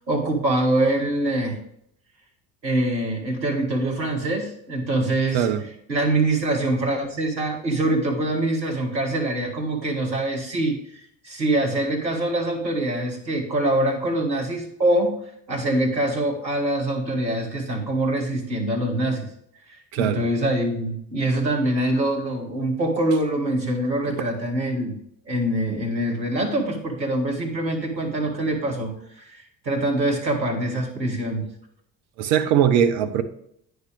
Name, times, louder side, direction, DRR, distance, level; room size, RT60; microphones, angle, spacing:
voice 1, 0.1-1.6 2.6-5.5 5.9-15.1 15.5-19.3 19.7-25.0 25.3-28.9 29.2-31.5, right 1 dB, 90° right, 1.4 m, -24 dB
voice 2, 32.2-33.2, right 9 dB, 60° right, 1.0 m, -20 dB
9.5 x 6.6 x 3.3 m
figure-of-eight pair, 55°, 50 cm